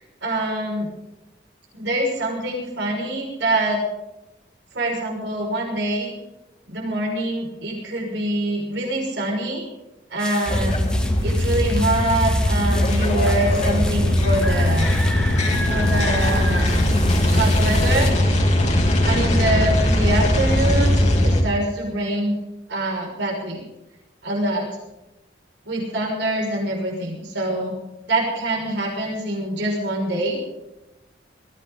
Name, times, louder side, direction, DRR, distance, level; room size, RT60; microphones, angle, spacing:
voice 1, 0.2-0.9 1.7-3.8 4.7-6.1 6.7-9.6 10.1-10.8 11.2-14.9 15.7-16.8 17.3-18.1 19.0-22.4 22.7-23.6 24.2-24.7 25.7-27.7 28.1-30.4, right 1 dB, 75° right, -1 dB, 5.9 m, -24 dB
sound 1, 10.2-18.1, left 1 dB, 5° left, 1.3 m, -33 dB
sound 2, 10.5-21.4, left 1 dB, 40° left, 2.9 m, -19 dB
21.5 x 15.5 x 4.0 m, 0.96 s
head